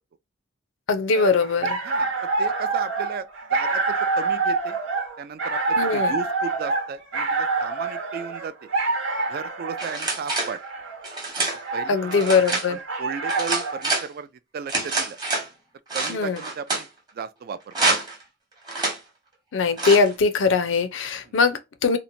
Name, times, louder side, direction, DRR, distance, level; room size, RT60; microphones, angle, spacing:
voice 1, 0.9-1.8 5.8-6.1 11.9-12.8 16.1-16.4 19.5-22.0, left 4 dB, 70° left, 0.5 m, -21 dB
sound 1, 1.4-13.8, right 3 dB, 80° right, 1.0 m, -27 dB
voice 2, 1.8-4.8 5.2-8.7 9.3-10.6 11.7-12.4 12.7-15.2 15.9-16.9 17.1-17.7 21.3-21.4, right 6 dB, 50° right, 0.3 m, -35 dB
sound 2, 9.8-10.5 11.0-11.6 12.1-12.7 13.3-14.1 14.7-15.5 15.9-16.9 17.7-18.2 18.7-19.0 19.8-20.1, right 3 dB, 20° right, 0.9 m, -26 dB
2.8 x 2.1 x 2.5 m
head